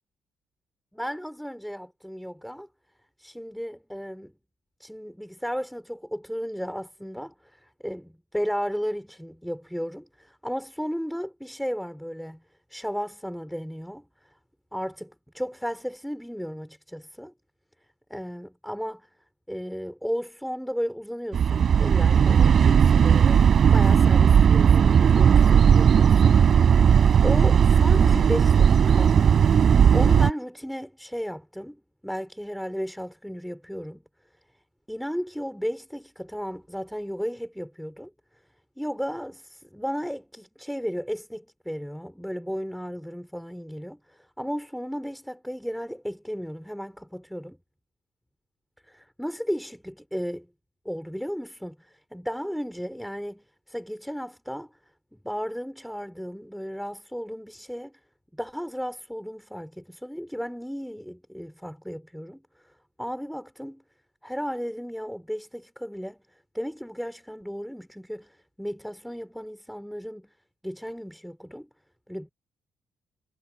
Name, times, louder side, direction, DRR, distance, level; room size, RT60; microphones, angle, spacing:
voice 1, 0.9-2.7 3.2-4.3 4.8-12.4 12.7-14.1 14.7-17.3 18.1-19.1 19.5-26.4 26.9-29.2 29.9-34.0 34.9-38.1 38.8-47.6 48.9-50.5 50.9-54.7 55.1-57.9 58.3-62.4 63.0-63.8 64.2-66.2 66.5-70.3 70.6-71.7 72.1-72.3, equal, ahead, 3.9 m, -34 dB
sound 1, 21.3-30.3, right 7 dB, 55° right, 4.1 m, -17 dB
cardioid pair, 90°, 0 cm